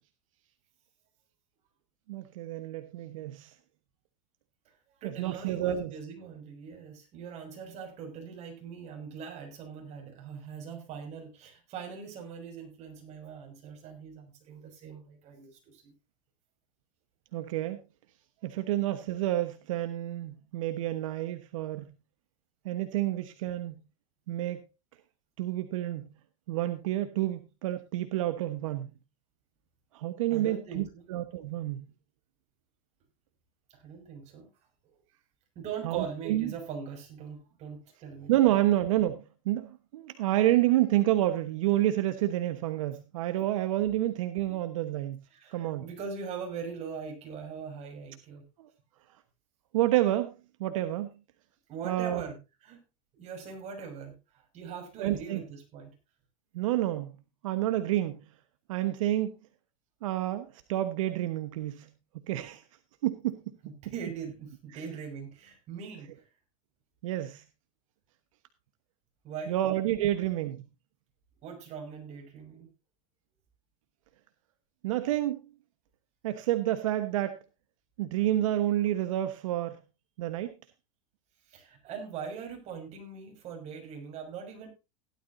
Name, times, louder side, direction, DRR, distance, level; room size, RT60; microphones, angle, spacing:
voice 1, 2.1-3.5 5.0-6.0 17.3-17.8 18.4-21.8 22.6-23.7 24.3-24.6 25.4-26.1 26.5-28.9 29.9-31.8 35.8-36.5 38.3-45.2 45.5-45.9 48.6-48.7 49.7-51.1 51.8-52.2 55.0-55.4 56.5-57.1 57.4-58.2 58.7-59.3 60.0-61.9 62.3-62.6 63.0-63.4 67.0-67.4 69.5-70.6 74.8-75.5 76.2-77.4 78.0-79.8 80.2-80.5, right 14 dB, 80° right, 10 dB, 1.2 m, -29 dB
voice 2, 5.0-15.9 30.3-31.1 33.7-34.5 34.8-35.0 35.5-38.4 44.5-44.6 45.3-48.5 51.7-52.8 53.1-55.9 63.6-66.3 69.2-69.6 70.1-70.2 71.4-72.7 81.5-84.7, right 6 dB, 40° right, 3 dB, 6.2 m, -41 dB
16.5 x 12.0 x 2.7 m, 0.28 s
supercardioid pair, 135°, 17 cm